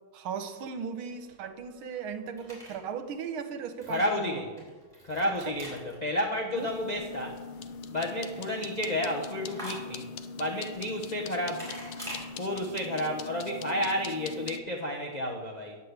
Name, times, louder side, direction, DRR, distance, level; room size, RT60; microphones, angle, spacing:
voice 1, 0.1-4.4 5.5-5.6 6.6-6.7, right 6 dB, 75° right, 9 dB, 1.7 m, -37 dB
sound 1, 1.0-12.2, equal, 15° right, 4.1 m, -48 dB
voice 2, 3.9-4.5 5.0-7.4 7.9-10.1 10.4-11.7 12.4-15.8, left 1 dB, 45° left, 0 dB, 0.5 m, -31 dB
sound 2, 6.5-14.6, left 5 dB, 75° left, 1.5 m, -41 dB
10.0 x 7.4 x 7.9 m, 1.4 s
omnidirectional pair, 2.4 m